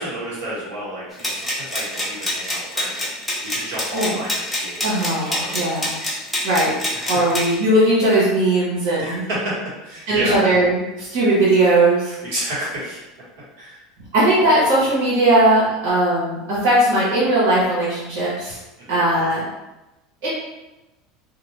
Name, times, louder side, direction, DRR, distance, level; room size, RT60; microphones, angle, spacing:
voice 1, 0.0-3.1 3.4-5.9 6.7-7.1 9.0-9.6 9.8-10.4 12.0-13.1 13.6-13.8 18.8-19.0, right 1 dB, 90° right, -7 dB, 1.2 m, -31 dB
sound 1, 1.2-7.6, left 1 dB, 5° left, 0.5 m, -26 dB
voice 2, 4.8-5.9 6.4-6.7 7.1-9.2 10.1-12.2 14.1-18.6 18.9-19.4 20.2-20.3, right 1 dB, 65° right, -8 dB, 1.1 m, -18 dB
2.4 x 2.2 x 3.2 m, 0.99 s
cardioid pair, 180°, 0 cm